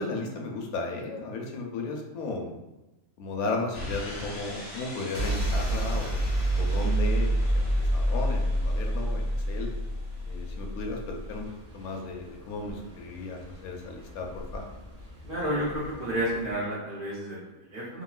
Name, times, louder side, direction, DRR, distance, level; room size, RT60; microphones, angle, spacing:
voice 1, 0.0-2.5 3.2-6.2 6.6-9.7 10.3-11.5 11.7-14.6, left 3 dB, 80° left, 2 dB, 1.0 m, -35 dB
sound 1, 3.7-11.4, right 1 dB, 45° left, 0.5 m, -28 dB
sound 2, 7.4-16.6, left 1 dB, 40° right, 1.2 m, -46 dB
voice 2, 15.2-18.0, equal, 55° right, -7 dB, 0.6 m, -31 dB
2.8 x 2.6 x 2.3 m, 1.0 s
omnidirectional pair, 1.5 m